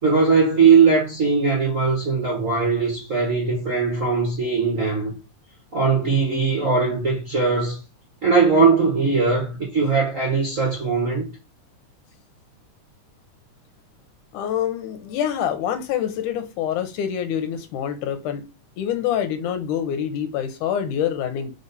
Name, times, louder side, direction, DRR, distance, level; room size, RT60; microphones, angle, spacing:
voice 1, 0.0-5.1 5.7-7.8 8.2-11.3, right 5 dB, 40° right, 1.2 m, -20 dB
voice 2, 14.3-18.5 18.8-21.5, left 9 dB, 85° left, 2.4 m, -26 dB
5.2 x 4.8 x 4.1 m
omnidirectional pair, 3.5 m